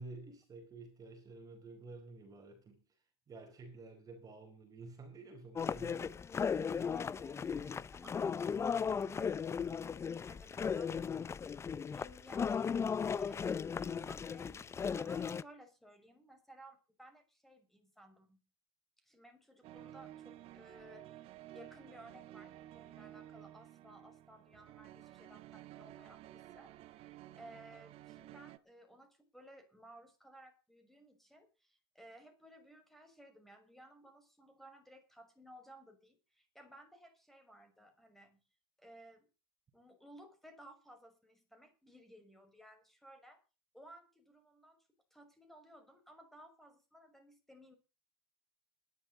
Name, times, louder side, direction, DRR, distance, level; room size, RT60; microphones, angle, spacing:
voice 1, 0.0-2.8 3.3-6.2, right 3 dB, 30° right, 4.5 m, -51 dB
sound 1, 5.6-15.4, left 6 dB, 20° left, 0.7 m, -36 dB
voice 2, 6.8-11.2 11.9-18.4 19.0-26.7 27.3-38.4 38.8-39.3 39.7-43.4 43.7-44.8 45.1-47.8, right 1 dB, ahead, 6.0 m, -58 dB
sound 2, 19.6-28.6, right 13 dB, 50° right, 1.4 m, -53 dB
20.0 x 11.5 x 4.1 m
supercardioid pair, 110°, 13 cm